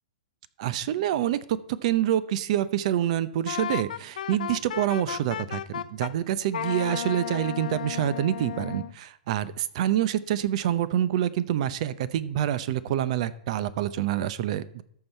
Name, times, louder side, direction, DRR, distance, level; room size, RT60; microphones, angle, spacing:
voice 1, 0.6-14.8, right 11 dB, 50° right, 17 dB, 0.7 m, -27 dB
Wind instrument woodwind instrument, 3.5-6.1 6.5-8.9, left 9 dB, 75° left, 0.5 m, -34 dB
13.5 x 5.6 x 4.4 m, 0.68 s
hypercardioid pair, 145°, 4 cm